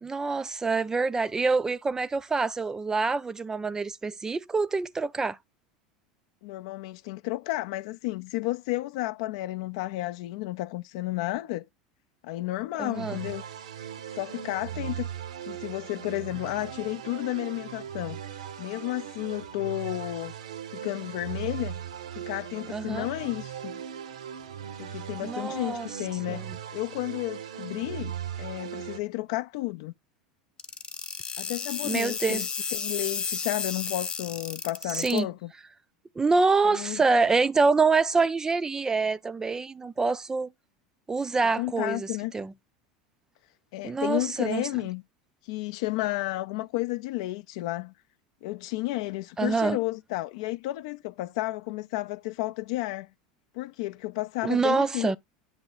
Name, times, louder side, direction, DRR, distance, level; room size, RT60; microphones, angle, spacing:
voice 1, 0.0-5.4 12.8-13.2 22.7-23.1 25.2-25.9 26.3-26.4 31.8-32.4 34.9-35.3 36.2-40.5 41.1-42.5 43.8-44.6 49.4-49.8 54.4-55.2, right 4 dB, 15° right, 0.4 m, -26 dB
voice 2, 6.4-11.7 12.2-13.5 14.1-15.1 15.4-18.2 18.6-20.3 20.7-21.8 22.2-23.8 24.8-26.4 26.7-29.9 31.4-35.5 36.6-37.0 41.6-42.3 43.7-45.0 45.4-47.9 48.4-53.1 53.5-55.2, left 18 dB, 60° left, 0.4 m, -32 dB
sound 1, 12.9-29.0, right 9 dB, 70° right, 0.7 m, -39 dB
sound 2, 30.6-35.2, left 6 dB, 25° left, 0.8 m, -32 dB
8.7 x 3.1 x 3.9 m
figure-of-eight pair, 80°, 4 cm